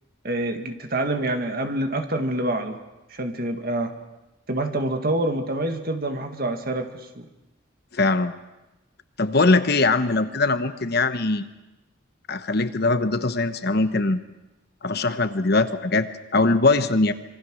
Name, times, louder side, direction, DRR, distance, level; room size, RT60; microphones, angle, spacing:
voice 1, 0.2-2.8 3.1-4.0 4.5-6.9 7.2-7.3, right 1 dB, 50° right, 6 dB, 2.1 m, -26 dB
voice 2, 7.9-8.3 9.2-11.5 12.3-14.2 14.8-17.1, left 3 dB, 55° left, 10 dB, 1.1 m, -21 dB
26.5 x 23.5 x 6.4 m, 1.0 s
head